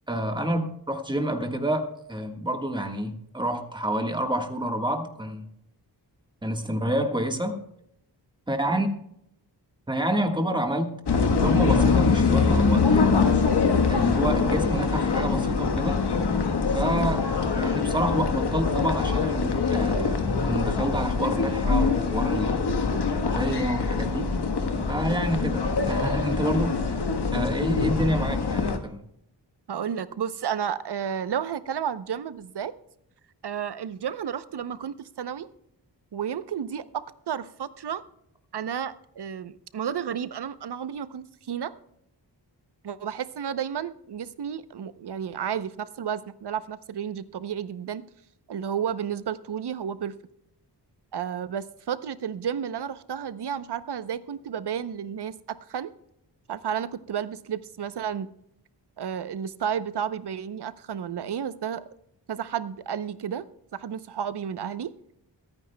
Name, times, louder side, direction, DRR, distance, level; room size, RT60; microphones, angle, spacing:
voice 1, 0.1-5.5 6.4-7.6 8.5-8.9 9.9-11.0 11.4-13.4 13.9-16.0 16.7-17.3 17.5-22.6 23.2-24.3 24.9-27.1 27.3-29.0, right 1 dB, 10° right, 4 dB, 1.5 m, -28 dB
sound 1, 11.1-28.8, left 4 dB, 70° left, 1.3 m, -24 dB
voice 2, 29.7-32.7 33.4-35.5 36.1-38.0 38.5-41.7 42.8-48.0 48.5-50.2 51.1-55.9 56.5-58.3 59.0-61.9 62.3-63.5 63.7-64.9, right 8 dB, 70° right, 14 dB, 0.7 m, -32 dB
23.5 x 9.7 x 2.2 m, 0.76 s
wide cardioid pair, 140°, 42 cm